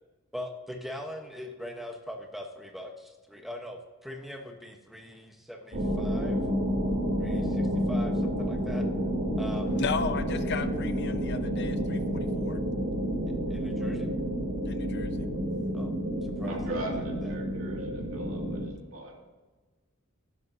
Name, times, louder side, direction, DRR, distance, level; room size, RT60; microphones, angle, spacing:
voice 1, 0.3-6.4 7.2-8.8 9.4-9.7 13.5-14.1 15.7-15.9 16.2-17.3, left 1 dB, ahead, 3 dB, 1.1 m, -41 dB
sound 1, 5.7-18.7, equal, 50° right, 3.0 m, -30 dB
voice 2, 9.7-12.6 14.7-15.1, left 5 dB, 55° left, 11 dB, 0.6 m, -35 dB
voice 3, 16.4-19.1, right 1 dB, 75° right, 0 dB, 2.4 m, -39 dB
12.0 x 10.5 x 2.8 m, 1.3 s
head